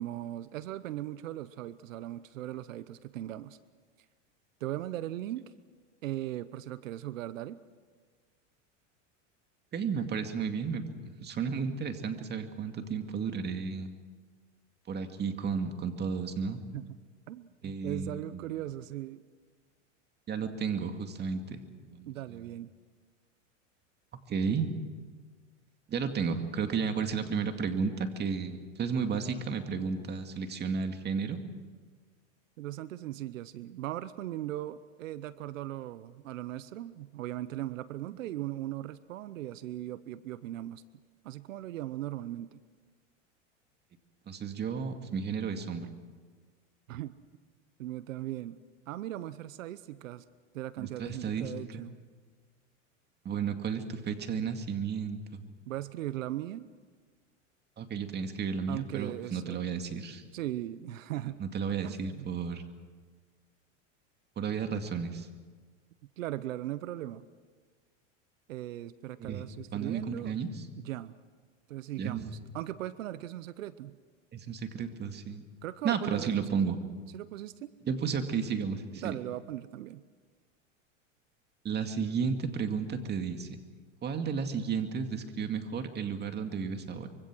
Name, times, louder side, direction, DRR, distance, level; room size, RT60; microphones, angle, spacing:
voice 1, 0.0-3.6 4.6-5.5 6.0-7.6 16.7-16.9 17.3-19.2 22.1-22.7 32.6-40.8 41.2-42.6 46.9-47.2 47.8-48.6 48.9-50.2 50.5-52.0 55.7-56.7 58.7-59.6 60.3-61.4 61.8-62.3 66.2-67.3 68.5-70.3 70.8-71.1 71.7-74.0 75.6-76.7 77.1-77.7 79.0-80.0, right 14 dB, 90° right, 16 dB, 0.9 m, -38 dB
voice 2, 9.7-13.9 14.9-16.6 17.6-18.4 20.3-21.6 21.9-22.1 24.3-24.7 25.9-31.4 44.3-45.9 50.8-51.9 53.2-55.4 57.8-60.2 61.4-62.6 64.4-65.3 69.2-69.4 69.7-70.5 72.0-72.3 74.3-75.5 75.8-76.8 77.9-79.1 81.6-83.5 84.0-87.1, right 6 dB, 25° right, 6 dB, 2.3 m, -33 dB
25.0 x 24.0 x 6.3 m, 1.5 s
supercardioid pair, 125°, 38 cm